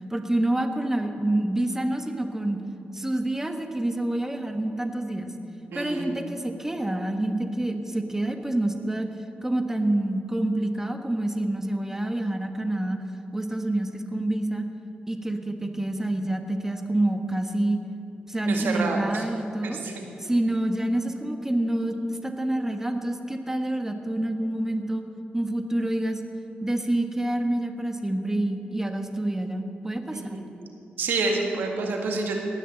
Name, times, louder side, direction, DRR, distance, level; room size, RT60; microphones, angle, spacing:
voice 1, 0.1-2.6 2.9-5.3 5.7-9.1 9.4-13.0 13.3-14.7 15.1-17.8 18.3-19.8 20.2-25.0 25.3-26.2 26.6-30.4, right 1 dB, 10° right, 5 dB, 1.4 m, -27 dB
voice 2, 5.7-6.1 18.5-19.2 19.6-19.9 30.1-30.4 31.0-32.4, right 3 dB, 90° right, 1 dB, 2.0 m, -28 dB
19.0 x 6.6 x 7.8 m, 2.9 s
cardioid pair, 65°, 3 cm